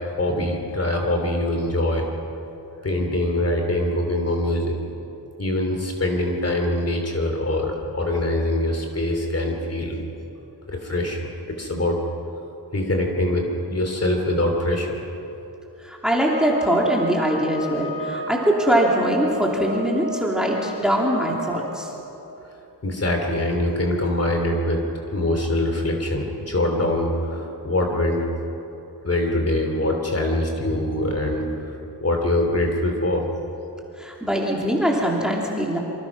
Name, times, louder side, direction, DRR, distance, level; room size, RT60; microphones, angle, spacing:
voice 1, 0.0-2.1 2.8-4.8 5.4-9.9 10.7-12.0 12.7-15.0 22.8-24.8 25.1-28.3 29.0-33.3, left 1 dB, 35° left, 2 dB, 3.2 m, -23 dB
voice 2, 15.8-21.9 34.0-35.8, equal, ahead, -2 dB, 3.2 m, -22 dB
sound 1, 16.3-21.7, right 2 dB, 35° right, 3.8 m, -33 dB
27.5 x 25.0 x 6.2 m, 3.0 s
wide cardioid pair, 170°, 40 cm